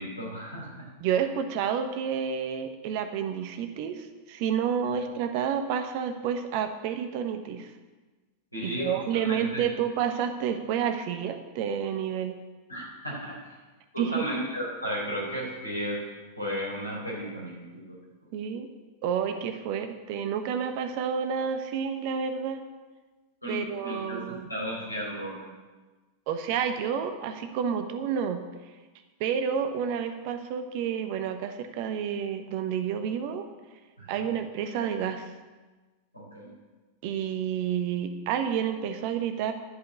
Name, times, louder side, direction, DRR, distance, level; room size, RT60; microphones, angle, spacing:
voice 1, 0.0-0.9 8.5-8.9 9.2-9.7 12.7-13.4 13.9-16.0 16.4-18.0 23.4-25.5 34.0-34.2 36.1-36.5, equal, 85° left, -4 dB, 4.2 m, -34 dB
voice 2, 1.0-7.7 8.6-12.4 14.0-14.3 18.3-18.7 19.0-22.6 23.5-24.5 26.3-28.4 29.2-33.5 34.1-35.3 37.0-39.5, right 8 dB, 45° right, 8 dB, 1.0 m, -30 dB
11.5 x 5.5 x 8.1 m, 1.3 s
figure-of-eight pair, 90°, 0 cm